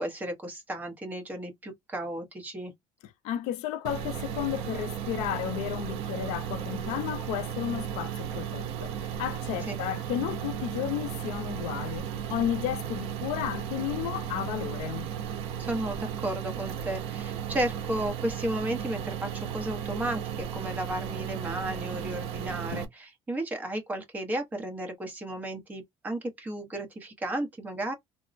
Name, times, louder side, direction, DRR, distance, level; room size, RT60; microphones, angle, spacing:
voice 1, 0.0-2.7 9.7-9.8 15.6-27.9, right 1 dB, 15° right, 0.8 m, -34 dB
voice 2, 3.2-15.1 22.7-22.8, left 11 dB, 85° left, 0.5 m, -33 dB
sound 1, 3.8-22.8, right 9 dB, 65° right, 0.7 m, -35 dB
3.6 x 2.0 x 2.5 m
cardioid pair, 170°, 11 cm